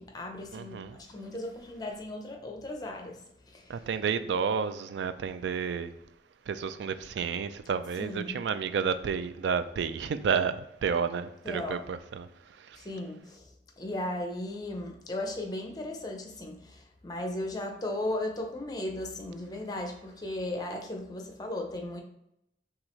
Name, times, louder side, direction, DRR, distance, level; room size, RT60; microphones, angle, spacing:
voice 1, 0.0-3.9 8.0-8.4 11.4-11.8 12.7-22.0, left 1 dB, 20° left, 0.6 m, -36 dB
voice 2, 0.5-1.0 3.7-5.9 6.5-12.3 12.7-12.8, right 6 dB, 85° right, 0.3 m, -31 dB
6.0 x 2.4 x 3.1 m
head